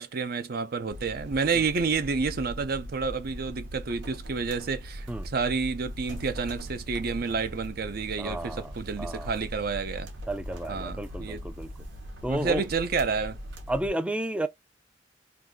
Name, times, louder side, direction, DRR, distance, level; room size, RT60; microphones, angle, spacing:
voice 1, 0.0-10.1 10.7-11.5 12.3-13.4, right 5 dB, 55° right, 0.5 m, -29 dB
sound 1, 0.9-13.9, equal, 80° right, 0.9 m, -40 dB
voice 2, 8.2-8.7 9.0-9.3 10.3-11.7 12.2-12.6 13.7-14.5, right 1 dB, 5° right, 0.3 m, -32 dB
2.7 x 2.3 x 3.5 m
head